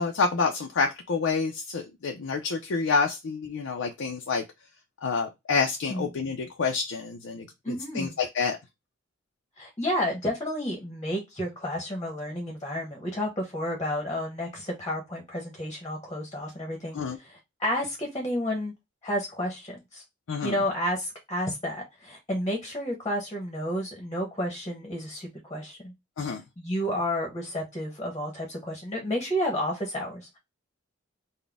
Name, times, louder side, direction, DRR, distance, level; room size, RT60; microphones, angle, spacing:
voice 1, 0.0-4.4 5.0-8.6 16.9-17.2 20.3-20.6 26.2-26.4, left 4 dB, 70° left, 2 dB, 0.5 m, -28 dB
voice 2, 7.6-8.1 9.6-18.7 19.0-20.0 20.4-25.9 26.6-30.4, equal, 20° left, 1 dB, 0.9 m, -31 dB
4.0 x 2.2 x 3.4 m, 0.21 s
head